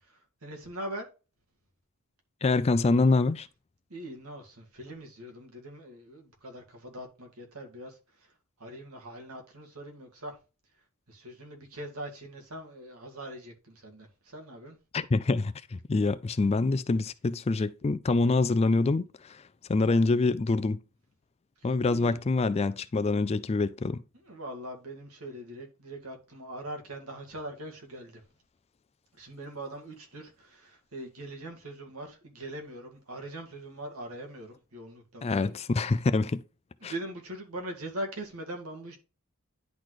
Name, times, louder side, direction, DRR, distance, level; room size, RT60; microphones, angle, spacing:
voice 1, 0.4-1.0 3.9-8.0 8.6-10.3 11.1-14.8 21.9-22.1 24.3-28.2 29.2-35.5 36.8-39.0, right 1 dB, 75° right, 2.0 m, -41 dB
voice 2, 2.4-3.5 14.9-19.4 19.7-20.8 21.6-24.0 35.2-36.4 36.8-36.9, left 3 dB, 30° left, 0.3 m, -25 dB
10.5 x 4.0 x 3.1 m
head